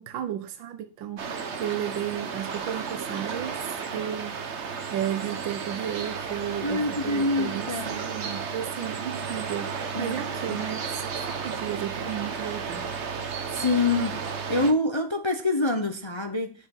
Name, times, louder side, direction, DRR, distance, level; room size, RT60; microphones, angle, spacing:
voice 1, 0.0-4.4 4.9-12.9, right 10 dB, 85° right, 1.6 m, -34 dB
sound 1, 1.2-14.7, right 5 dB, 45° right, 1.1 m, -33 dB
voice 2, 6.6-7.9 9.9-10.1 10.5-10.6 13.5-16.5, left 2 dB, 25° left, 0.7 m, -26 dB
8.2 x 6.9 x 7.1 m
omnidirectional pair, 2.0 m